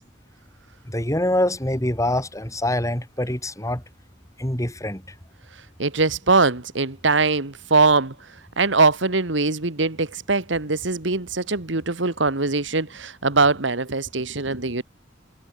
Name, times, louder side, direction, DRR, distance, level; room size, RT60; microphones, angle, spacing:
voice 1, 0.9-3.8 4.4-5.0, left 1 dB, 15° left, 5.7 m, -24 dB
voice 2, 5.8-8.1 8.6-14.8, right 3 dB, 70° right, 1.8 m, -21 dB
head